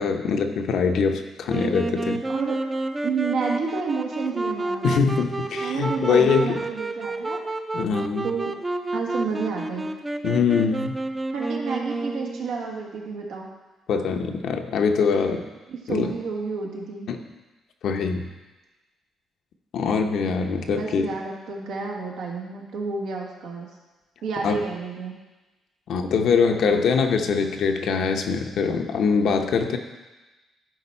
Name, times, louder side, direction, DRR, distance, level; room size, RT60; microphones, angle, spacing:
voice 1, 0.0-2.2 4.8-6.6 7.7-8.3 10.2-11.0 13.9-15.4 15.9-16.1 17.1-17.2 17.8-18.3 19.7-21.1 24.4-24.6 25.9-29.8, left 5 dB, 70° left, 5 dB, 0.7 m, -23 dB
Wind instrument woodwind instrument, 1.5-12.6, right 2 dB, 20° right, 0.5 m, -30 dB
voice 2, 2.3-2.6 3.0-4.9 5.6-7.4 8.2-8.6 8.9-9.9 11.3-13.5 15.7-17.1 20.7-23.7 24.2-25.2, right 5 dB, 85° right, -1 dB, 1.5 m, -30 dB
11.0 x 4.4 x 4.3 m, 1.1 s
cardioid pair, 90°, 0 cm